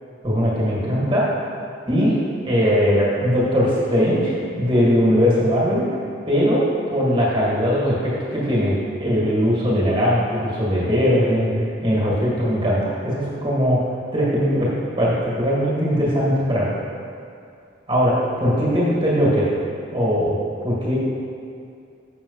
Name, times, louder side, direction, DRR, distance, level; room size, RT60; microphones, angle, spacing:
voice 1, 0.2-1.2 1.9-2.1 2.4-5.8 6.3-6.6 6.9-13.8 14.1-14.7 15.0-16.7 17.9-19.5 19.9-20.4 20.6-20.9, equal, 25° right, -7 dB, 2.0 m, -20 dB
7.0 x 6.7 x 4.0 m, 2.5 s
head